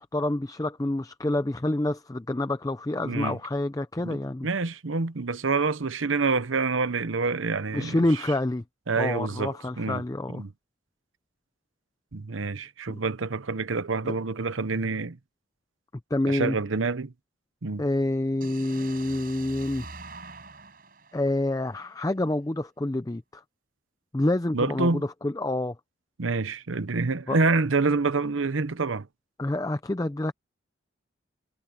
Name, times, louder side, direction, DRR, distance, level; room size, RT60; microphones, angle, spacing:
voice 1, 0.0-4.5 7.7-8.6 9.0-10.4 14.0-14.2 16.1-16.6 17.8-19.9 21.1-23.4 24.1-25.7 27.3-27.4 29.4-30.3, left 1 dB, 15° left, 0.5 m, -27 dB
voice 2, 3.0-3.4 4.0-8.2 8.9-10.0 10.3-10.5 12.1-15.2 16.3-17.1 17.6-17.9 24.5-25.1 26.2-29.1, right 4 dB, 85° right, 0.9 m, -27 dB
sound 1, 18.4-22.3, right 3 dB, 45° right, 7.2 m, -45 dB
head